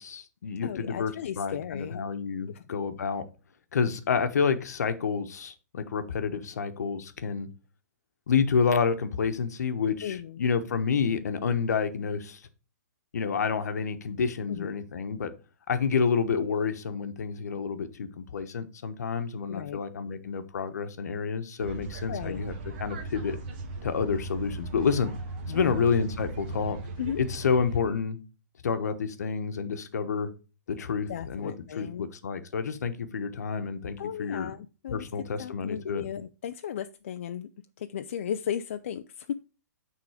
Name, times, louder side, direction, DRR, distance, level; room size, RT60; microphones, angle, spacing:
voice 1, 0.0-3.2 3.7-7.5 8.3-12.4 13.1-15.3 15.7-22.5 22.8-23.4 23.8-25.1 25.5-26.8 27.2-28.2 28.6-30.3 30.7-34.5 34.9-36.0, left 6 dB, 65° left, 9 dB, 1.1 m, -29 dB
voice 2, 0.6-2.1 2.5-2.6 10.0-10.5 14.5-14.7 19.5-19.8 22.1-22.4 25.5-25.9 27.0-27.2 31.1-32.1 34.0-35.1 35.4-37.5 37.8-39.3, left 9 dB, 45° left, 8 dB, 0.4 m, -35 dB
sound 1, 21.6-27.8, right 2 dB, 35° right, 1.3 m, -37 dB
9.5 x 3.7 x 4.9 m, 0.33 s
hypercardioid pair, 170°, 9 cm